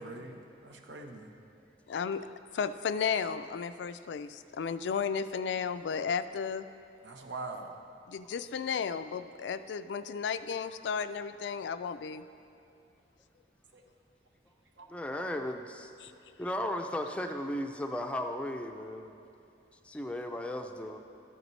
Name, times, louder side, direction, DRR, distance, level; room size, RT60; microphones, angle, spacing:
voice 1, 0.0-1.3 7.0-7.8 13.7-13.8 14.8-14.9, right 3 dB, 85° right, 3 dB, 0.9 m, -43 dB
voice 2, 1.9-2.3 2.5-6.7 8.1-12.2 16.0-16.3, left 6 dB, 80° left, 12 dB, 0.3 m, -34 dB
voice 3, 14.9-15.9 16.4-19.1 19.8-21.0, left 1 dB, 5° left, 4 dB, 0.4 m, -35 dB
13.5 x 7.9 x 3.2 m, 2.7 s
head